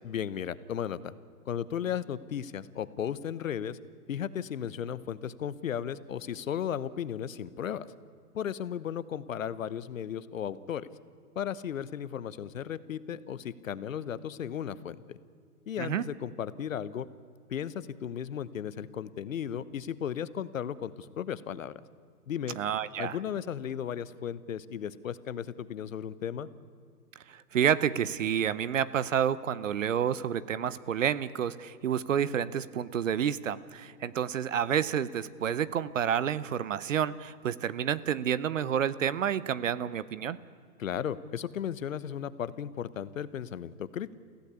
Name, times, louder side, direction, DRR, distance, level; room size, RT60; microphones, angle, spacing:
voice 1, 0.0-1.1 1.5-3.8 4.1-7.9 8.3-10.9 11.3-15.2 15.7-17.1 17.5-21.7 22.3-22.6 23.0-26.5 40.8-44.1, left 9 dB, 60° left, 16 dB, 1.0 m, -35 dB
voice 2, 22.6-23.2 27.3-40.4, right 9 dB, 55° right, 18 dB, 0.9 m, -29 dB
24.0 x 16.0 x 8.2 m, 2.2 s
hypercardioid pair, 165°, 46 cm